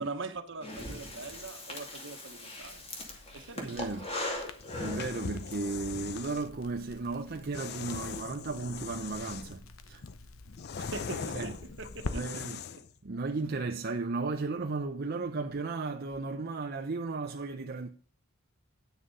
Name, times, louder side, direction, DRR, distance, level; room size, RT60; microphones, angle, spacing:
voice 1, 0.0-2.9 3.3-4.0 10.8-12.4 12.8-12.9, right 3 dB, 65° right, 1.2 m, -42 dB
Breathing, 0.6-5.6, left 2 dB, 30° left, 2.3 m, -40 dB
Crackle, 2.6-12.1, left 3 dB, 90° left, 0.9 m, -47 dB
voice 2, 3.5-4.1 4.8-10.0 11.3-11.6 12.1-12.6 13.0-17.9, right 3 dB, 50° right, 0.6 m, -35 dB
sound 1, 4.6-6.5 7.5-9.6 10.0-12.9, left 6 dB, 50° left, 0.5 m, -41 dB
9.4 x 6.4 x 5.4 m
head